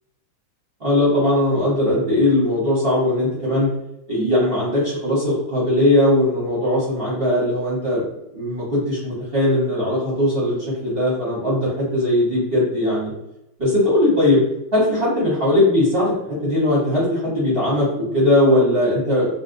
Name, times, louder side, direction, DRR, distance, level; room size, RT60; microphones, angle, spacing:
voice 1, 0.8-3.7 4.1-8.0 8.3-13.1 13.6-14.4 14.7-19.3, left 1 dB, 45° right, -7 dB, 0.7 m, -19 dB
4.3 x 2.1 x 2.5 m, 0.88 s
omnidirectional pair, 2.3 m